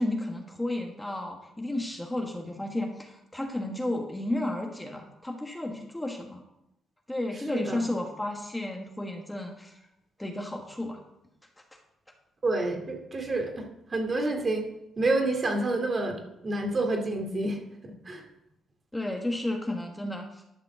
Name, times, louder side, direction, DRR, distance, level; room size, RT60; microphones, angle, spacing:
voice 1, 0.0-6.4 7.1-9.8 10.2-11.0 11.6-11.8 18.9-20.4, left 1 dB, 10° left, 2 dB, 1.4 m, -33 dB
voice 2, 7.5-7.8 12.4-14.7 15.0-18.2, right 2 dB, 35° right, 3 dB, 2.3 m, -29 dB
12.0 x 4.9 x 7.0 m, 0.86 s
cardioid pair, 90°, 0 cm